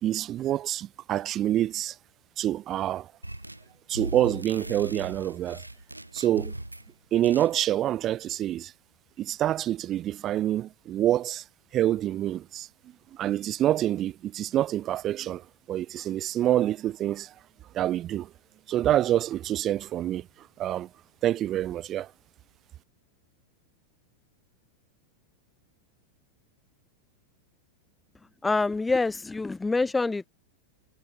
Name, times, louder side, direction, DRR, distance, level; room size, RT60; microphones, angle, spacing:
voice 1, 0.0-1.9 2.4-3.1 3.9-5.6 6.1-6.5 7.1-8.7 9.2-11.4 11.7-12.7 13.1-17.3 17.7-18.3 18.7-20.3 20.6-20.9 21.2-22.1, right 12 dB, 30° right, 0.8 m, -27 dB
sound 1, 3.2-3.7 3.9-6.9 7.2-7.5, right 1 dB, 85° right, 0.8 m, -38 dB
voice 2, 28.4-30.3, left 3 dB, 10° left, 0.4 m, -26 dB
figure-of-eight pair, 90°, 0 cm